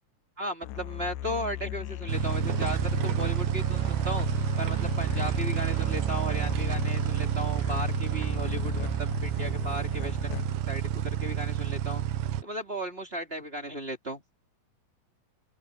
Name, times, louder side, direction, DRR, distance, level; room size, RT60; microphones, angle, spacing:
voice 1, 0.4-4.3 4.6-12.0 12.4-14.2, equal, 20° right, 3.1 m, -36 dB
Musical instrument, 0.6-10.8, left 12 dB, 75° left, 2.3 m, -37 dB
sound 1, 2.1-12.4, right 12 dB, 65° right, 1.8 m, -29 dB
open air
omnidirectional pair, 3.9 m